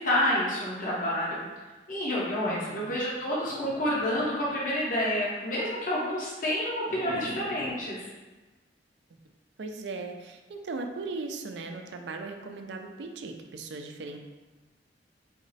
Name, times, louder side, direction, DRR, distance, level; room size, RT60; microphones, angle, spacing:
voice 1, 0.0-1.4 1.9-8.1, left 1 dB, 50° left, -6 dB, 0.8 m, -29 dB
voice 2, 2.5-3.0 9.6-14.2, right 3 dB, 70° right, 5 dB, 0.4 m, -38 dB
sound 1, 3.4-4.9 6.8-7.8, equal, 5° left, 0.7 m, -43 dB
4.3 x 2.0 x 4.0 m, 1.2 s
head